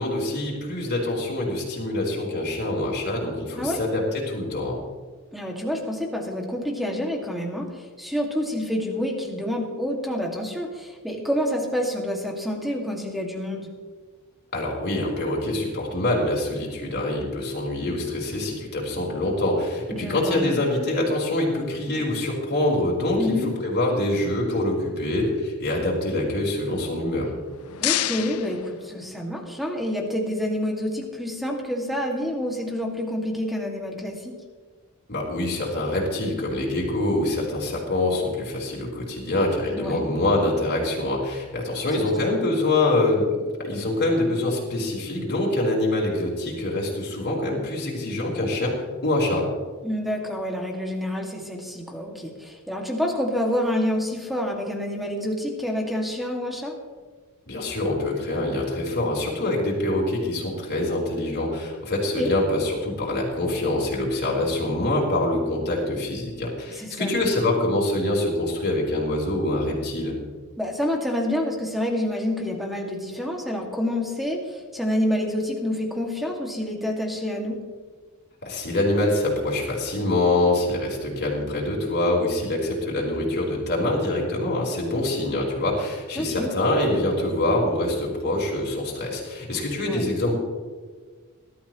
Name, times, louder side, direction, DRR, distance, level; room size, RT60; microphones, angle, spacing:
voice 1, 0.0-4.8 14.5-23.4 23.6-27.3 35.1-43.2 43.6-48.7 49.0-49.4 57.5-70.1 78.4-90.4, left 1 dB, 50° left, -3 dB, 4.5 m, -25 dB
voice 2, 5.3-7.7 8.0-13.7 19.9-20.6 23.2-23.5 27.8-34.3 39.8-40.0 42.0-42.1 49.8-56.7 62.2-62.3 66.8-67.1 70.6-77.6 86.2-86.5 89.8-90.0, left 1 dB, ahead, 0 dB, 2.2 m, -28 dB
sound 1, 27.3-29.5, left 13 dB, 85° left, 0.6 m, -30 dB
21.0 x 13.0 x 3.1 m, 1.5 s
head